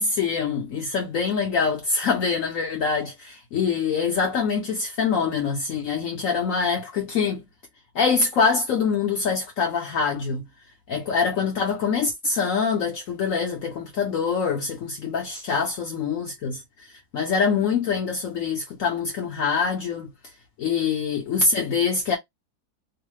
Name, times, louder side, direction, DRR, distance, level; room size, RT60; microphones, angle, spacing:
voice 1, 0.0-7.5 7.9-10.5 10.9-20.1 20.6-22.2, left 5 dB, 65° left, 1.0 m, -24 dB
3.0 x 2.0 x 3.1 m
omnidirectional pair, 1.7 m